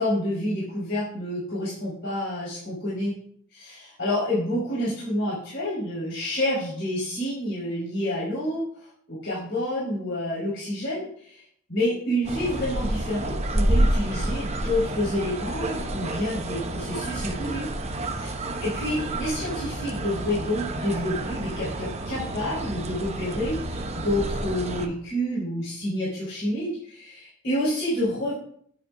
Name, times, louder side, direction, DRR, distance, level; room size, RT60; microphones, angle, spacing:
voice 1, 0.0-3.1 3.5-11.4 11.7-17.7 18.2-18.3 18.6-28.3, left 1 dB, 65° left, -9 dB, 4.8 m, -28 dB
sound 1, 12.2-24.9, right 1 dB, 35° right, 0.9 m, -29 dB
14.0 x 8.8 x 2.7 m, 0.64 s
head